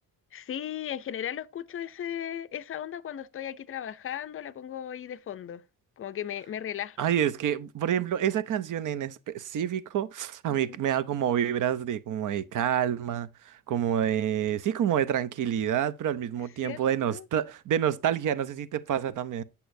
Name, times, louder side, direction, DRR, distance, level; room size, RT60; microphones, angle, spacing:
voice 1, 0.3-5.6 6.0-7.1 10.5-10.8 16.6-17.3, left 10 dB, 40° left, 0.4 m, -36 dB
voice 2, 7.0-19.4, right 9 dB, 60° right, 0.6 m, -28 dB
8.3 x 7.0 x 2.6 m
cardioid pair, 130°, 34 cm